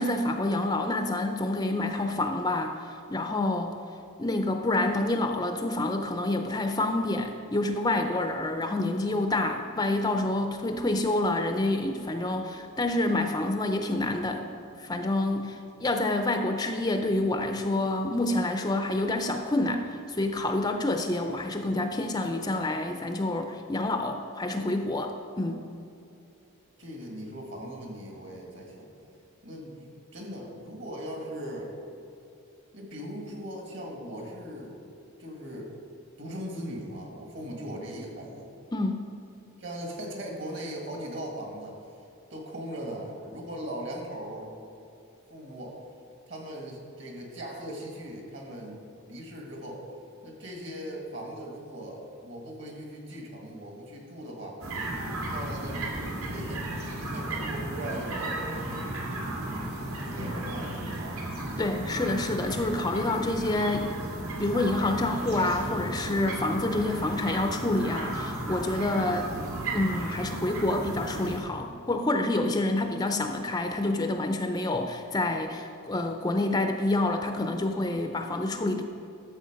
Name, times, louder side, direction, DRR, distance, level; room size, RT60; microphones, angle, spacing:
voice 1, 0.0-3.7 4.2-14.5 14.8-25.6 38.7-39.0 61.6-63.9 64.4-69.3 69.7-78.8, left 2 dB, 15° left, 5 dB, 0.4 m, -28 dB
voice 2, 26.8-28.9 29.4-31.7 32.7-34.7 35.2-35.7 36.2-38.5 39.6-41.9 42.3-44.5 45.3-45.8 46.3-48.8 49.1-49.8 50.2-54.7 55.3-59.3 60.0-61.8, equal, 55° right, 0 dB, 2.1 m, -39 dB
sound 1, 54.6-71.4, right 1 dB, 80° right, 2.5 m, -34 dB
12.0 x 7.4 x 5.2 m, 2.6 s
head